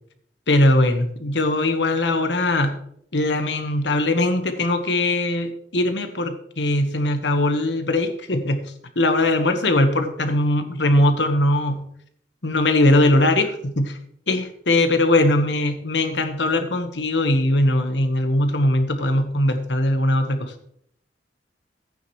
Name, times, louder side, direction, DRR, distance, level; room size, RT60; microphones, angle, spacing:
voice 1, 0.5-2.8 3.1-8.6 8.9-11.8 12.4-14.0 14.3-20.5, left 1 dB, 80° left, 7 dB, 1.3 m, -20 dB
14.0 x 9.2 x 3.2 m, 0.68 s
head